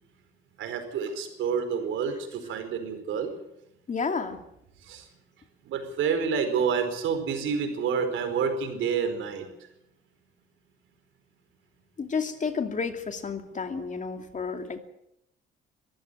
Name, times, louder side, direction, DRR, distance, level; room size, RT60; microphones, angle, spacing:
voice 1, 0.6-3.3 4.8-5.1 5.6-9.4, right 6 dB, 85° right, 7 dB, 4.7 m, -28 dB
voice 2, 3.9-4.4 12.0-14.8, left 5 dB, 40° left, 6 dB, 2.7 m, -31 dB
23.0 x 15.0 x 8.3 m, 0.81 s
cardioid pair, 90°, 20 cm